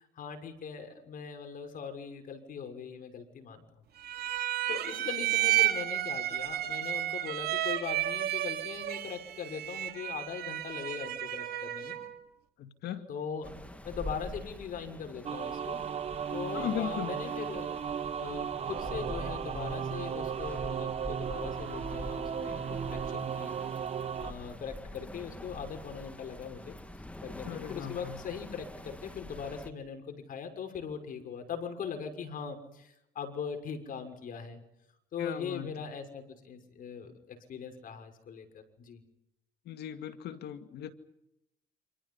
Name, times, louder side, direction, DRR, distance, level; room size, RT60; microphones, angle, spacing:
voice 1, 0.0-3.6 4.1-4.4 4.7-12.0 13.1-13.5 13.8-15.8 16.3-17.8 18.1-23.6 24.2-26.8 27.2-34.6 35.1-39.0, left 6 dB, 55° left, 7 dB, 6.2 m, -40 dB
sound 1, 4.0-12.1, right 13 dB, 65° right, 3.5 m, -32 dB
voice 2, 12.6-13.1 16.5-17.2 27.4-28.2 35.2-35.9 39.7-40.9, left 10 dB, 75° left, 8 dB, 2.3 m, -38 dB
sound 2, 13.4-29.7, left 1 dB, 10° left, 2.2 m, -45 dB
sound 3, 15.2-24.3, right 7 dB, 40° right, 1.0 m, -35 dB
28.5 x 27.5 x 5.7 m, 0.82 s
cardioid pair, 110°, 17 cm